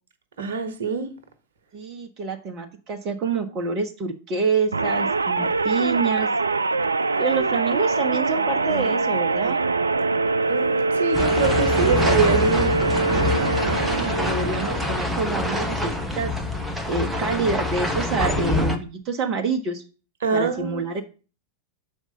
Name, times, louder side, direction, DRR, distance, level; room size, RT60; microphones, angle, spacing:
voice 1, 0.4-1.1 10.5-12.7 20.2-20.8, right 6 dB, 60° right, 1.2 m, -24 dB
voice 2, 1.7-6.3 7.2-9.6 13.6-16.3 16.9-19.8 20.3-21.0, right 4 dB, 35° right, 1.0 m, -27 dB
sound 1, 4.7-15.1, right 3 dB, 75° right, 0.3 m, -23 dB
sound 2, 11.1-18.8, left 2 dB, 5° right, 1.1 m, -25 dB
6.4 x 4.8 x 6.7 m
figure-of-eight pair, 90°, 0 cm